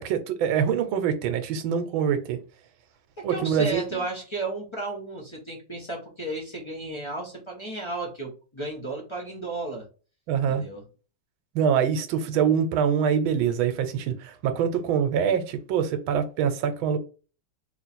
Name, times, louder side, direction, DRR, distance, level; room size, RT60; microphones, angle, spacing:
voice 1, 0.0-2.4 3.2-4.1 10.3-10.6 11.5-17.0, right 7 dB, 85° right, 1.5 m, -24 dB
voice 2, 3.2-9.9 10.5-10.8, right 2 dB, 45° left, 0.3 m, -33 dB
3.1 x 3.0 x 4.1 m
omnidirectional pair, 2.2 m